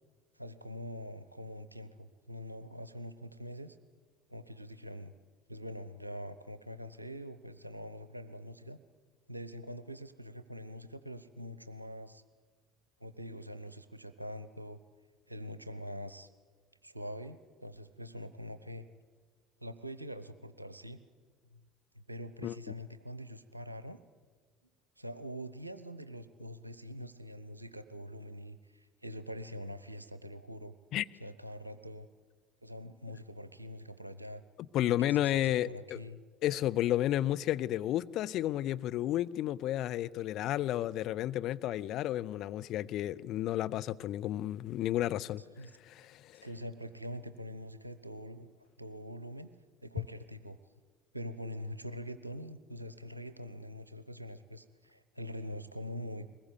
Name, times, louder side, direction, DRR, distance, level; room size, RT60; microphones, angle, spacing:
voice 1, 0.4-3.8 4.3-5.1 5.5-8.8 9.3-12.2 13.0-14.8 15.3-16.3 16.8-18.8 19.6-21.0 21.5-21.6 21.9-24.0 25.0-30.7 31.2-32.1 32.6-34.4 34.8-36.2 45.6-45.7 46.4-48.5 48.8-49.5 49.8-50.6 51.1-56.3, equal, 90° right, 0.8 m, -44 dB
voice 2, 34.7-36.0 36.4-45.4 45.8-46.5, left 13 dB, 50° left, 0.6 m, -32 dB
22.5 x 20.0 x 8.1 m
figure-of-eight pair, 60°, 0 cm